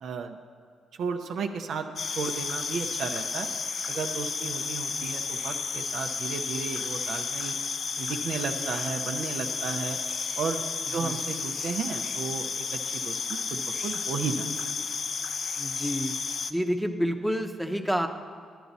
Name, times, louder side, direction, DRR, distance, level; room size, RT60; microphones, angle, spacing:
voice 1, 0.0-0.4 1.0-1.9 2.2-3.5 3.9-7.6 8.0-10.0 10.4-10.6 10.9-14.5, right 5 dB, 70° right, 5 dB, 0.6 m, -33 dB
sound 1, 2.0-16.5, left 5 dB, 55° left, 0.4 m, -32 dB
voice 2, 15.6-16.1 16.5-18.1, equal, ahead, 4 dB, 0.8 m, -28 dB
11.0 x 9.1 x 4.1 m, 2.1 s
supercardioid pair, 60°, 0 cm